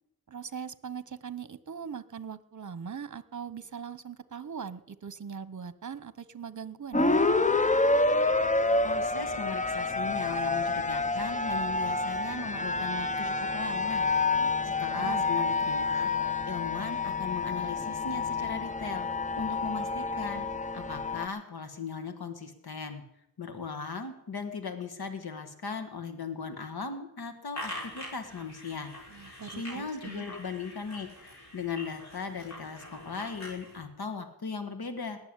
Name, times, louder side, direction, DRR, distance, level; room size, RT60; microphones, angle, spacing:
voice 1, 0.3-7.3 14.4-15.3 29.1-30.3, right 7 dB, 50° right, 15 dB, 1.0 m, -41 dB
sound 1, 6.9-21.3, left 3 dB, 20° left, 0.8 m, -28 dB
voice 2, 8.8-14.0 14.6-19.1 19.3-20.5 20.7-23.0 23.4-28.9 29.2-35.2, left 5 dB, 85° left, 7 dB, 1.7 m, -38 dB
sound 2, 27.5-33.8, left 1 dB, 45° left, 5.7 m, -44 dB
19.5 x 7.1 x 9.8 m, 0.82 s
wide cardioid pair, 60°, 37 cm